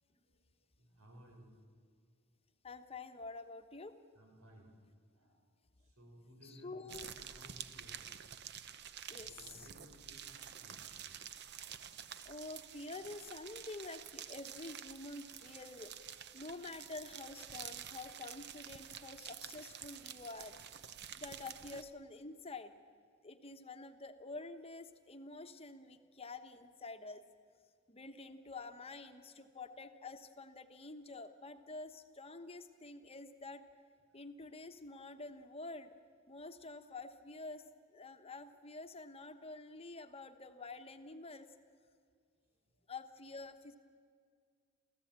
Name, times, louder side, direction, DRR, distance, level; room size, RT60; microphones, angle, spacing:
voice 1, 0.0-1.6 4.1-4.8 5.1-5.4 5.8-8.1 9.1-10.9 25.8-26.0 28.2-28.3 29.1-29.2 34.1-34.2 42.5-42.8, equal, 85° right, 3 dB, 5.1 m, -60 dB
voice 2, 2.6-4.0 6.4-7.1 9.1-9.3 9.6-9.7 12.2-22.7 23.2-27.2 27.9-33.6 34.1-36.0 36.3-37.6 37.9-41.5 42.9-43.8, left 3 dB, 30° left, 8 dB, 1.1 m, -48 dB
sound 1, 6.9-21.8, right 9 dB, 50° right, 0.8 m, -49 dB
29.0 x 14.5 x 8.9 m, 2.1 s
head